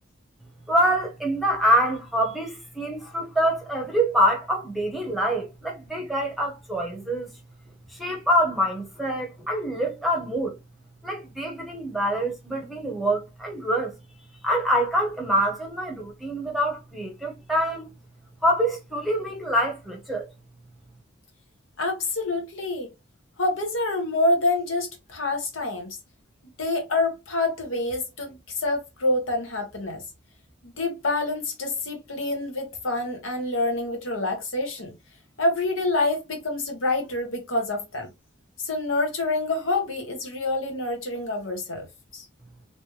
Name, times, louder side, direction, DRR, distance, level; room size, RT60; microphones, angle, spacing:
voice 1, 0.7-7.3 7.9-10.6 11.0-14.0 14.4-17.9 18.4-20.3, equal, ahead, 0.9 m, -25 dB
voice 2, 21.8-22.9 23.4-25.9 26.6-30.0 30.6-34.9 35.4-38.1 38.6-41.9 42.1-42.3, left 2 dB, 85° left, 1.4 m, -27 dB
3.2 x 3.1 x 3.1 m
head